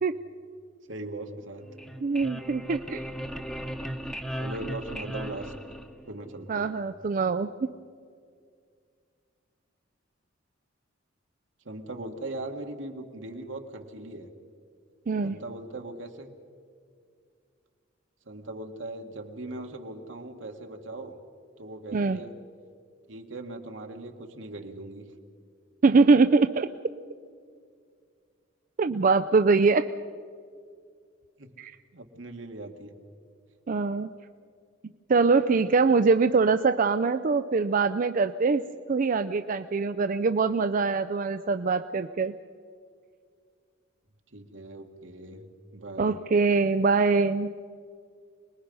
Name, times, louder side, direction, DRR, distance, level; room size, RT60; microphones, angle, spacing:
voice 1, 0.9-1.7 4.4-5.5 6.1-6.8 11.6-14.3 15.1-16.3 18.2-21.2 21.6-22.4 23.1-25.1 28.9-29.0 31.4-31.5 31.9-33.0 44.3-46.2, right 2 dB, 80° right, 4 dB, 1.8 m, -39 dB
sound 1, 1.6-6.3, equal, 5° left, 1.0 m, -37 dB
voice 2, 2.0-3.0 6.5-7.7 15.1-15.4 21.9-22.2 25.8-26.7 28.8-29.9 31.6-31.7 33.7-34.1 35.1-42.3 46.0-47.5, right 4 dB, 45° right, 9 dB, 0.4 m, -23 dB
26.0 x 20.5 x 5.5 m, 2.2 s
head